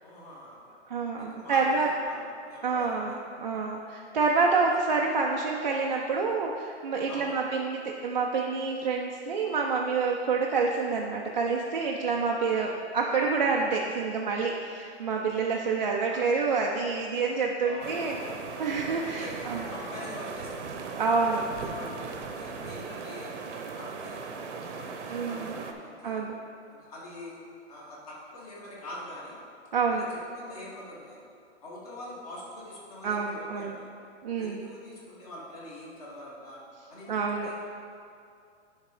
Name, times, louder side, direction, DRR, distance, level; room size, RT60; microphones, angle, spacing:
voice 1, 0.0-0.8 1.2-1.6 2.0-3.1 7.1-7.4 16.1-16.2 17.6-18.3 19.0-20.8 21.6-23.3 23.7-26.2 26.7-27.4 27.7-29.3 29.9-30.0 30.3-31.2 31.6-33.9 34.3-36.6 36.9-37.5, left 1 dB, 30° left, -5 dB, 1.6 m, -44 dB
voice 2, 0.9-1.9 2.6-18.2 18.6-19.7 21.0-21.5 25.1-25.6 26.0-26.4 29.7-30.1 33.0-33.8 34.2-34.7 37.1-37.5, right 4 dB, 40° right, -1 dB, 0.4 m, -28 dB
sound 1, 17.8-25.7, right 5 dB, 80° right, 0.9 m, -38 dB
10.5 x 3.6 x 4.9 m, 2.4 s
hypercardioid pair, 175°, 35 cm